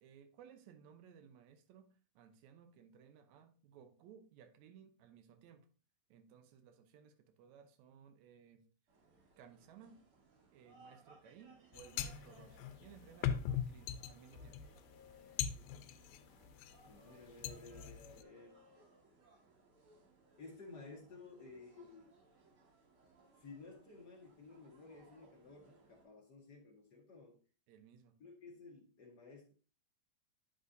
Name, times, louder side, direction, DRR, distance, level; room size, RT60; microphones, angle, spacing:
voice 1, 0.0-5.7 6.1-8.6 9.4-10.0 10.5-14.6 27.7-28.2, right 8 dB, 70° right, 1.8 m, -60 dB
sound 1, 8.9-26.0, right 2 dB, 45° right, 2.4 m, -66 dB
sound 2, 11.7-16.7 17.1-18.2, left 9 dB, 90° left, 2.4 m, -41 dB
voice 2, 16.8-18.6 20.4-22.1 23.4-27.4 28.2-29.5, left 3 dB, 70° left, 0.9 m, -55 dB
9.5 x 6.2 x 2.6 m
omnidirectional pair, 4.0 m